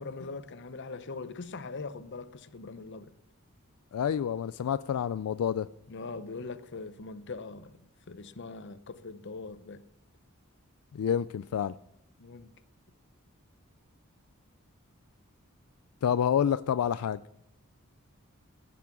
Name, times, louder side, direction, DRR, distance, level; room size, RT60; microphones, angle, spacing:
voice 1, 0.0-3.1 5.9-9.8 12.2-12.5, left 3 dB, 55° left, 0.7 m, -41 dB
voice 2, 3.9-5.7 10.9-11.7 16.0-17.2, left 8 dB, 80° left, 0.3 m, -28 dB
15.0 x 6.1 x 7.1 m
head